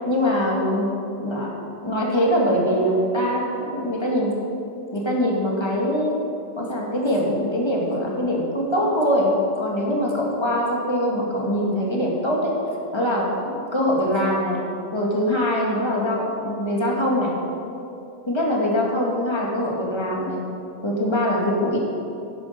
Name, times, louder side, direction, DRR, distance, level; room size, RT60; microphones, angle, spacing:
voice 1, 0.1-0.9 1.2-1.5 1.8-4.3 4.9-6.1 6.6-9.3 9.6-12.5 12.9-14.6 14.9-17.3 18.3-20.4 20.8-21.8, equal, 15° left, -3 dB, 2.1 m, -23 dB
12.0 x 10.5 x 5.3 m, 2.7 s
omnidirectional pair, 1.9 m